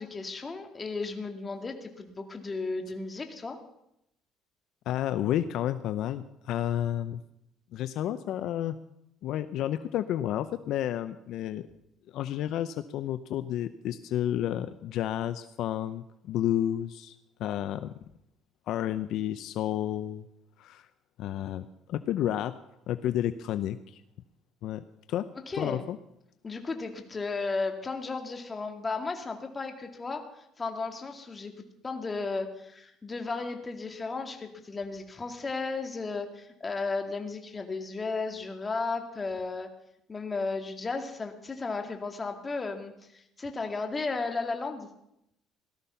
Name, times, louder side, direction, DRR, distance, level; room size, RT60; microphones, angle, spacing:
voice 1, 0.0-3.6 25.5-25.8 26.4-30.2 30.6-31.5 31.8-39.7 40.1-44.9, left 3 dB, 20° left, 4 dB, 2.2 m, -34 dB
voice 2, 4.9-7.2 7.7-8.8 9.2-11.7 12.1-17.9 18.7-20.3 20.6-20.9 21.2-22.5 22.9-24.0 24.6-25.3 25.6-26.0, left 11 dB, 65° left, 11 dB, 0.7 m, -31 dB
17.5 x 13.5 x 5.7 m, 0.80 s
cardioid pair, 125°, 0 cm